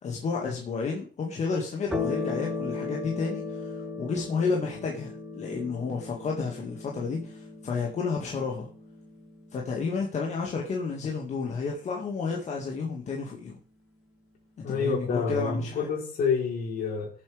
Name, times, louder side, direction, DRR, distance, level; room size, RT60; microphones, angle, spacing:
voice 1, 0.0-8.7 9.5-13.6 14.6-15.9, left 4 dB, 45° left, 2.0 m, -31 dB
sound 1, 1.9-10.8, left 3 dB, 5° right, 6.0 m, -37 dB
voice 2, 14.6-17.1, left 5 dB, 60° left, 3.8 m, -28 dB
19.5 x 7.5 x 3.5 m
cardioid pair, 110°, 17 cm